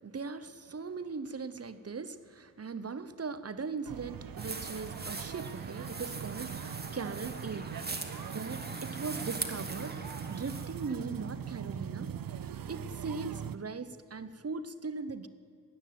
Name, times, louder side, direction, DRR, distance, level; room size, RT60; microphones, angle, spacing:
voice 1, 0.0-7.7 8.3-10.0 10.3-12.1 12.7-15.3, right 4 dB, 45° right, 13 dB, 0.8 m, -39 dB
sound 1, 3.9-13.6, right 9 dB, 85° right, 0.6 m, -41 dB
sound 2, 4.4-10.9, right 3 dB, 30° right, 1.5 m, -41 dB
16.0 x 9.9 x 9.3 m, 2.5 s
wide cardioid pair, 70°, 33 cm